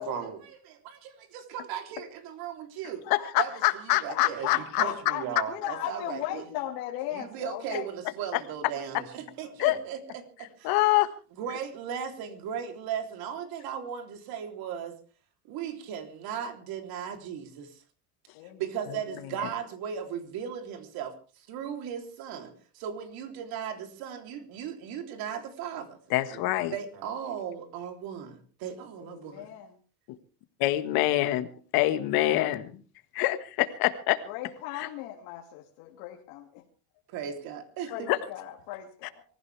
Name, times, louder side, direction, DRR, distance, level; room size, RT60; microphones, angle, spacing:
voice 1, 0.0-3.1 3.4-4.5 4.8-6.4 7.1-10.7 11.4-15.0 15.5-17.8 18.6-26.0 26.3-29.5 37.1-38.1, right 8 dB, 60° right, 6 dB, 3.4 m, -37 dB
voice 2, 3.1-4.8 9.6-9.8 10.6-11.1 26.1-26.7 30.6-31.5 31.7-32.8 33.1-34.2 34.8-34.9 38.1-38.2, left 16 dB, 65° left, 11 dB, 1.6 m, -25 dB
voice 3, 4.1-7.9 18.3-18.9 29.0-29.8 34.3-36.6 37.9-39.2, left 13 dB, 80° left, -1 dB, 2.6 m, -37 dB
24.0 x 15.5 x 3.4 m, 0.37 s
cardioid pair, 150°, 40 cm